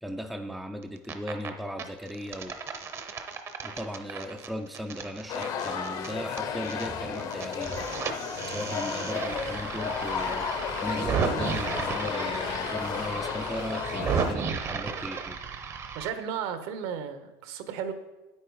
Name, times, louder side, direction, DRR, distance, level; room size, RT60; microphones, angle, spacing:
voice 1, 0.0-2.5 3.6-7.9 8.5-15.4, equal, ahead, 5 dB, 0.5 m, -37 dB
sound 1, 0.8-1.5 1.8-6.9 7.1-16.1, right 6 dB, 25° right, 0.8 m, -34 dB
sound 2, 5.3-14.3, left 7 dB, 35° left, 0.8 m, -33 dB
voice 2, 15.9-17.9, right 8 dB, 60° right, 10 dB, 1.0 m, -34 dB
9.0 x 8.7 x 4.8 m, 1.1 s
supercardioid pair, 150°, 11 cm